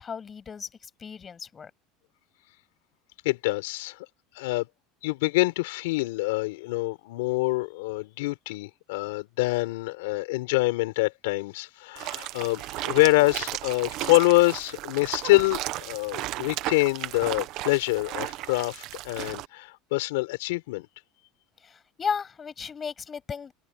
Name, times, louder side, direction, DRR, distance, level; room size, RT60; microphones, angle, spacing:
voice 1, 0.0-1.7 21.6-23.5, left 6 dB, 25° left, 7.3 m, -35 dB
voice 2, 3.2-4.0 4.3-4.7 5.0-20.9, left 22 dB, 90° left, 5.0 m, -25 dB
sound 1, 12.0-19.5, right 17 dB, 55° right, 1.2 m, -35 dB
supercardioid pair, 145°, 0 cm